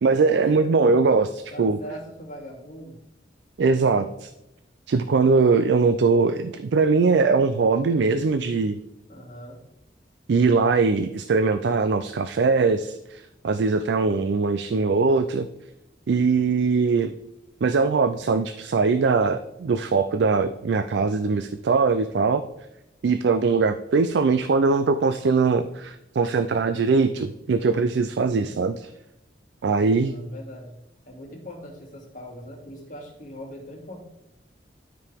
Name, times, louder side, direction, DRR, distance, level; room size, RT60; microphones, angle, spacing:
voice 1, 0.0-1.8 3.6-4.3 4.9-8.8 10.3-15.5 16.1-17.1 17.6-22.4 23.0-28.9 29.6-30.2, right 4 dB, 75° right, 10 dB, 0.4 m, -21 dB
voice 2, 1.5-3.0 3.9-4.0 9.1-9.6 28.1-28.6 30.0-30.8 31.1-34.0, equal, 45° left, -2 dB, 2.4 m, -41 dB
12.5 x 4.8 x 3.5 m, 0.86 s
head